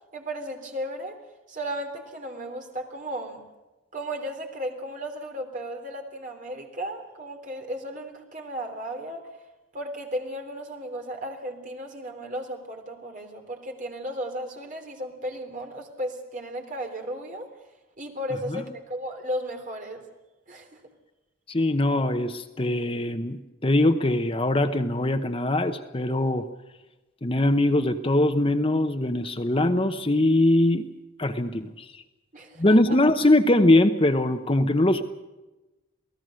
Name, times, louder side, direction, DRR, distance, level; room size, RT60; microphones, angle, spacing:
voice 1, 0.1-1.2 1.5-3.4 3.9-9.3 9.7-17.5 18.0-20.0 20.5-20.8 32.3-33.0, equal, 40° right, 3 dB, 3.4 m, -35 dB
voice 2, 21.5-26.5 27.2-30.9 31.2-32.0 32.6-35.0, left 1 dB, 25° left, 8 dB, 0.9 m, -22 dB
28.0 x 18.0 x 6.4 m, 1.1 s
head